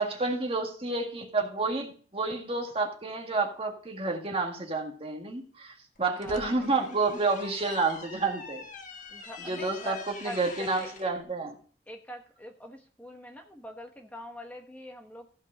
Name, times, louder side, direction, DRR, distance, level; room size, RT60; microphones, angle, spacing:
voice 1, 0.0-8.6 9.5-11.5, right 3 dB, 35° right, 2 dB, 1.8 m, -30 dB
sound 1, 5.9-11.1, left 4 dB, 45° left, 1.3 m, -45 dB
voice 2, 6.1-6.8 9.1-11.1 11.9-15.3, equal, 10° left, 3 dB, 1.1 m, -44 dB
14.5 x 5.3 x 5.3 m, 0.43 s
head